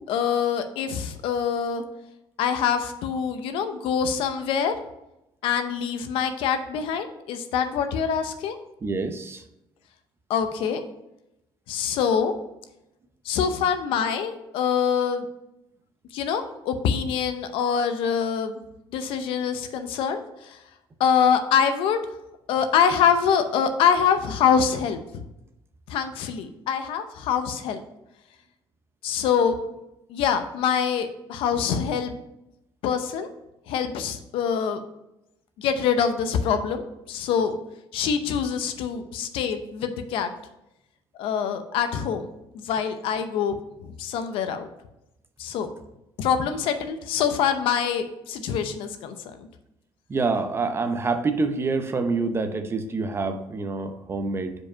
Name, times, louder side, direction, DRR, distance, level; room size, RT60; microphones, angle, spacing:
voice 1, 0.1-1.8 2.4-4.7 5.4-8.6 10.3-10.8 11.7-12.3 13.2-15.3 16.1-18.6 18.9-20.6 21.0-22.0 22.5-25.0 25.9-27.8 29.0-29.6 30.1-32.1 32.8-33.3 33.7-34.8 35.6-37.6 37.9-40.3 41.2-42.3 42.5-44.6 45.4-45.7 46.2-49.5, left 7 dB, 80° left, 8 dB, 0.7 m, -25 dB
voice 2, 8.8-9.4 39.0-39.1 50.1-54.6, right 3 dB, 25° right, 8 dB, 0.7 m, -27 dB
5.0 x 4.8 x 5.5 m, 0.88 s
cardioid pair, 115°, 9 cm